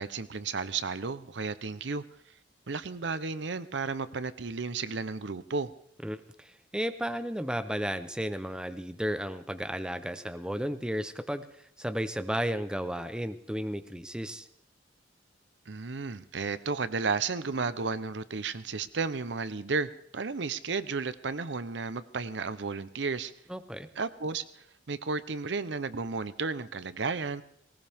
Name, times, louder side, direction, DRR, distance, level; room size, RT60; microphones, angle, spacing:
voice 1, 0.0-2.0 2.7-5.7 15.7-23.3 24.0-27.4, right 4 dB, 70° right, 14 dB, 0.8 m, -33 dB
voice 2, 6.0-11.5 11.8-14.5 23.5-23.9, equal, 5° right, 10 dB, 0.7 m, -33 dB
19.0 x 19.0 x 3.6 m, 0.67 s
head